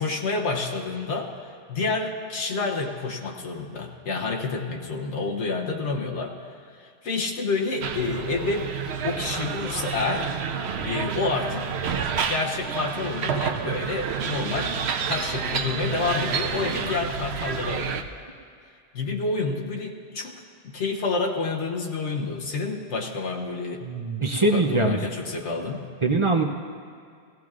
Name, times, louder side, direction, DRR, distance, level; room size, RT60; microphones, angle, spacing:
voice 1, 0.0-6.4 6.8-8.7 9.0-10.3 10.8-11.7 12.3-18.0 18.9-23.8 24.3-25.8, left 3 dB, 75° left, 0 dB, 1.3 m, -29 dB
sound 1, 7.8-18.0, right 6 dB, 70° right, 0.9 m, -29 dB
voice 2, 23.8-25.0 26.0-26.4, right 3 dB, 35° right, 3 dB, 0.5 m, -22 dB
17.0 x 16.5 x 2.4 m, 2.2 s
omnidirectional pair, 1.2 m